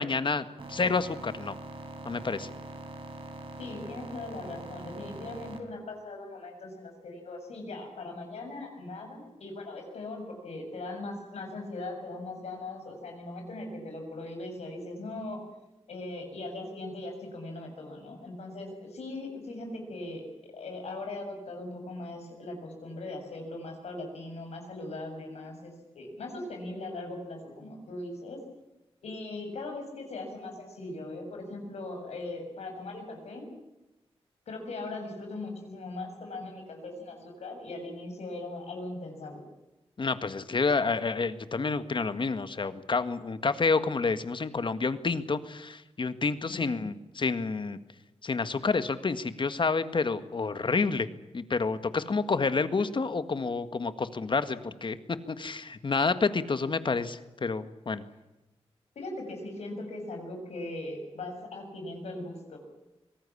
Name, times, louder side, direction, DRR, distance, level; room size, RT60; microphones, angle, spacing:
voice 1, 0.0-1.6 2.1-2.5 40.0-47.8 48.2-51.1 51.3-58.0, left 4 dB, 50° left, 11 dB, 1.7 m, -29 dB
sound 1, 0.6-5.6, right 2 dB, 55° right, 4.6 m, -43 dB
voice 2, 3.6-15.4 15.9-28.4 29.0-33.5 34.5-39.4 46.5-46.8 59.0-62.6, left 2 dB, 85° left, 3 dB, 7.1 m, -39 dB
24.5 x 18.5 x 8.6 m, 0.98 s
cardioid pair, 65°, 11 cm